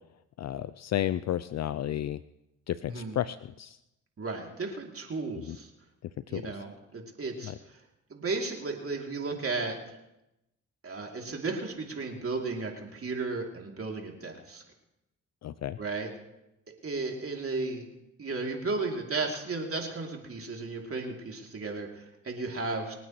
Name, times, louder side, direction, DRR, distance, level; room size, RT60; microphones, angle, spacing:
voice 1, 0.4-2.2 2.7-3.8 5.4-5.6 6.3-6.5 7.4-7.5 15.4-15.8, left 12 dB, 50° left, 15 dB, 0.5 m, -32 dB
voice 2, 2.8-3.1 4.2-5.7 6.3-7.8 8.1-10.0 10.8-14.6 15.8-16.1 16.8-17.9 18.2-22.9, right 3 dB, 40° right, 1 dB, 3.0 m, -34 dB
26.5 x 9.2 x 3.2 m, 0.90 s
supercardioid pair, 50°, 33 cm